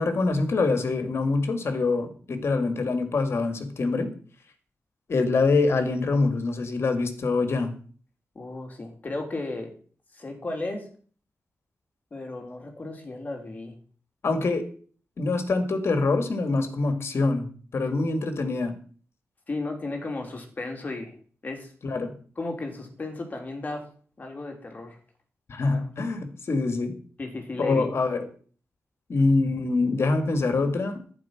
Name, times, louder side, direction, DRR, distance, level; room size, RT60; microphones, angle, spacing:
voice 1, 0.0-4.1 5.1-7.7 14.2-14.7 15.2-17.5 17.7-18.8 21.8-22.1 25.5-26.9 27.6-28.3 29.1-31.0, left 3 dB, 50° left, 8 dB, 2.1 m, -25 dB
voice 2, 8.3-9.7 10.1-10.9 12.1-13.7 19.5-21.1 21.4-21.7 22.3-23.9 24.2-25.0 27.2-27.9, left 2 dB, 30° left, 3 dB, 3.3 m, -34 dB
11.0 x 9.6 x 5.9 m, 0.43 s
wide cardioid pair, 160°, 5 cm